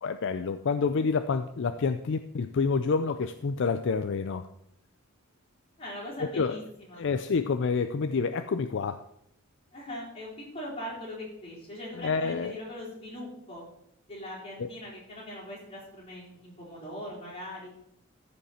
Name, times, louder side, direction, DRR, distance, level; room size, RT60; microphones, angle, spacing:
voice 1, 0.0-4.5 6.2-6.6 7.0-9.0 11.9-12.6 14.6-14.7, left 5 dB, 55° left, 9 dB, 0.4 m, -28 dB
voice 2, 5.8-6.6 6.9-7.0 9.7-13.6 14.1-17.7, left 1 dB, 25° left, -6 dB, 4.2 m, -40 dB
14.0 x 5.4 x 4.3 m, 0.77 s
head